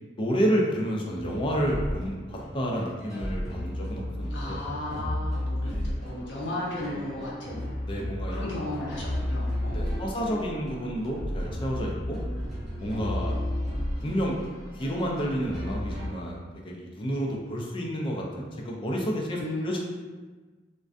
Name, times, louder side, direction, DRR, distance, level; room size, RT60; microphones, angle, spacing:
voice 1, 0.2-4.6 7.9-8.4 9.7-12.2 12.8-13.4 14.0-14.4 14.7-19.8, equal, 30° left, -2 dB, 0.4 m, -30 dB
sound 1, 1.2-16.1, left 1 dB, ahead, 0.7 m, -33 dB
voice 2, 4.3-7.6 8.3-10.3 12.9-13.6 19.4-19.8, left 1 dB, 80° left, -5 dB, 0.6 m, -35 dB
2.4 x 2.1 x 2.4 m, 1.3 s
head